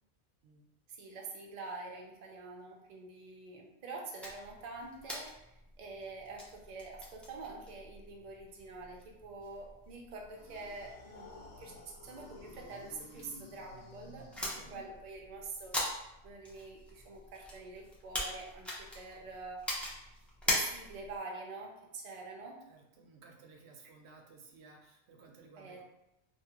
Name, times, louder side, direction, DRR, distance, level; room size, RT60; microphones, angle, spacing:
voice 1, 0.9-5.3 5.8-11.7 12.0-15.8 16.2-19.6 20.5-22.6 25.6-25.8, right 3 dB, 50° right, 0 dB, 0.5 m, -46 dB
sound 1, 4.2-21.2, left 1 dB, ahead, 0.4 m, -42 dB
sound 2, 10.3-15.1, left 2 dB, 75° left, 0.9 m, -54 dB
voice 2, 14.4-14.8 22.7-25.8, right 4 dB, 80° right, 1 dB, 0.8 m, -57 dB
2.7 x 2.4 x 2.9 m, 0.86 s
omnidirectional pair, 1.1 m